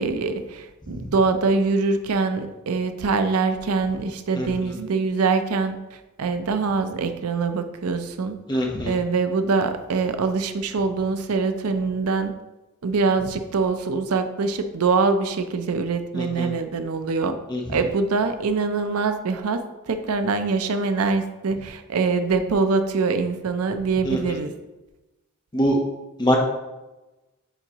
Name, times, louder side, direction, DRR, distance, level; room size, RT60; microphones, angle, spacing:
voice 1, 0.0-12.3 12.8-17.4 17.7-24.5, right 4 dB, 90° right, 9 dB, 0.5 m, -24 dB
voice 2, 4.3-4.7 8.5-8.9 16.1-16.5 17.5-17.8 24.0-24.4 25.5-25.8 26.2-26.4, equal, 20° left, 0 dB, 0.9 m, -24 dB
9.0 x 3.9 x 2.9 m, 1.1 s
head